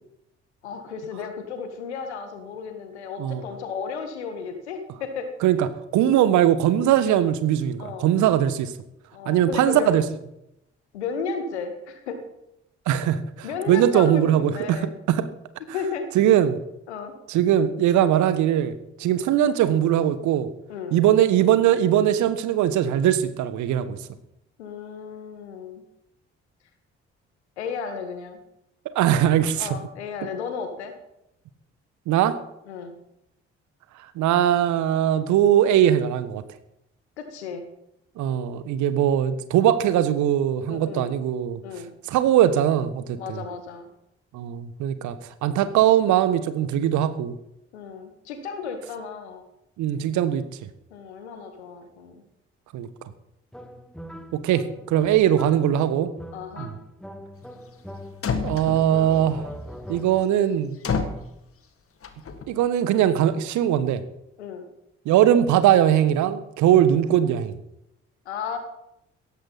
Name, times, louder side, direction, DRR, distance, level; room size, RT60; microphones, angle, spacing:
voice 1, 0.6-5.3 7.8-8.1 9.1-10.0 10.9-12.2 13.4-14.9 15.7-16.1 16.9-17.1 20.7-21.0 24.6-25.8 27.6-28.4 29.6-30.9 32.7-32.9 37.2-37.7 40.7-41.1 41.6-41.9 43.2-43.9 47.7-49.4 50.9-52.2 55.1-55.6 56.3-56.7 64.4-64.6 66.7-66.8 68.3-68.6, left 6 dB, 80° left, 7 dB, 2.0 m, -34 dB
voice 2, 5.9-8.7 9.3-10.0 12.9-15.3 16.1-16.6 17.3-20.5 20.9-24.0 28.9-29.7 32.1-32.4 34.1-36.4 38.2-41.6 42.1-43.4 44.3-45.1 45.4-47.3 49.8-50.7 52.7-52.9 54.3-56.1 56.6-56.7 58.4-59.5 59.9-60.8 62.5-64.0 65.0-67.6, right 11 dB, 60° right, 13 dB, 1.3 m, -20 dB
sound 1, 53.5-58.5 58.9-60.4, equal, ahead, 2.0 m, -41 dB
sound 2, 57.9-58.0 58.2-59.1 60.8-61.3 62.0-62.4, left 5 dB, 40° left, 2.2 m, -28 dB
17.0 x 14.5 x 4.2 m, 0.83 s
figure-of-eight pair, 45°, 33 cm